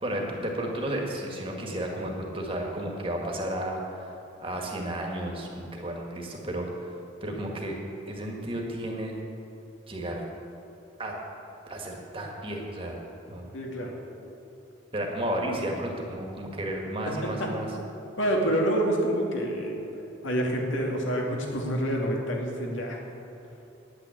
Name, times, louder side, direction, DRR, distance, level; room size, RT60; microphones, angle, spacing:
voice 1, 0.0-4.1 4.4-6.9 7.2-7.7 8.1-9.1 9.9-10.2 11.0-11.1 11.7-13.0 13.3-13.5 14.9-17.7, right 1 dB, 25° right, 0 dB, 1.8 m, -32 dB
voice 2, 13.5-14.0 17.0-17.5 18.2-19.8 20.2-23.0, right 1 dB, 85° left, 0 dB, 2.4 m, -27 dB
10.0 x 9.3 x 8.4 m, 2.9 s
head